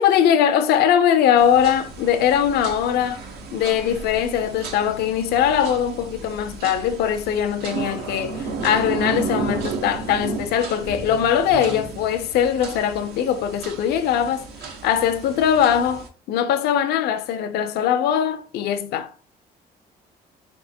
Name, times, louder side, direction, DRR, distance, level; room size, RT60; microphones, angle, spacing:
voice 1, 0.0-3.2 3.5-19.1, left 9 dB, 70° left, 0.5 m, -21 dB
sound 1, 1.4-16.1, right 4 dB, 75° right, 0.9 m, -33 dB
3.7 x 3.5 x 2.7 m
cardioid pair, 110°, 17 cm